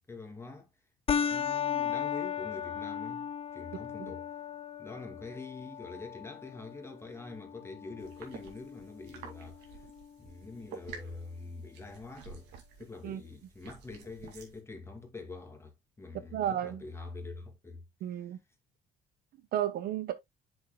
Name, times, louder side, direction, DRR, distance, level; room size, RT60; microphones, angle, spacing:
voice 1, 0.1-0.7 1.2-4.3 4.8-9.9 10.2-12.5 12.8-17.8, left 3 dB, 15° left, 2.2 m, -45 dB
sound 1, 1.1-10.1, left 8 dB, 35° left, 0.5 m, -36 dB
sound 2, 8.0-14.6, right 6 dB, 85° right, 2.3 m, -51 dB
voice 2, 16.3-16.8 18.0-18.4 19.5-20.1, right 11 dB, 70° right, 0.9 m, -32 dB
8.0 x 6.5 x 2.2 m
cardioid pair, 110°, 17 cm